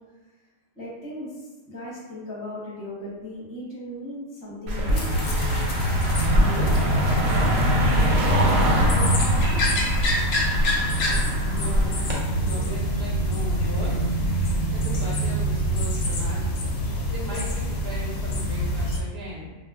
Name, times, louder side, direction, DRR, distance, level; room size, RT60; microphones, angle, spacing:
voice 1, 0.8-5.2 6.4-6.7 7.2-7.5 7.9-9.8, left 1 dB, 20° left, -7 dB, 0.7 m, -37 dB
Car passing by, 4.7-12.2, equal, 90° right, 1.0 m, -24 dB
sound 1, 4.9-19.0, equal, 65° left, 0.7 m, -25 dB
voice 2, 10.9-12.1 12.4-14.0 14.4-16.7 17.1-19.6, equal, 55° right, -6 dB, 0.8 m, -38 dB
2.3 x 2.0 x 3.4 m, 1.3 s
omnidirectional pair, 1.4 m